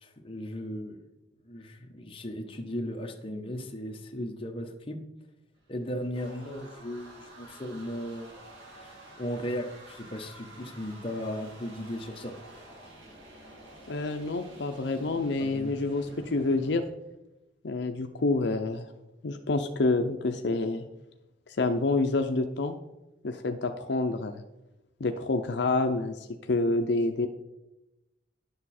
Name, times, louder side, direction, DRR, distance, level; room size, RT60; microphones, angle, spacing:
voice 1, 0.0-1.0 1.4-5.0 5.7-8.3 8.8-8.9 9.2-12.3 15.4-15.8, equal, 30° left, 3 dB, 1.0 m, -36 dB
sound 1, 5.5-16.8, right 1 dB, 80° right, 2.4 m, -50 dB
voice 2, 13.9-16.8 17.6-18.8 19.2-20.8 21.5-22.8 23.2-24.4 25.0-27.3, left 3 dB, 70° left, 6 dB, 0.6 m, -28 dB
11.0 x 6.8 x 4.3 m, 0.95 s
head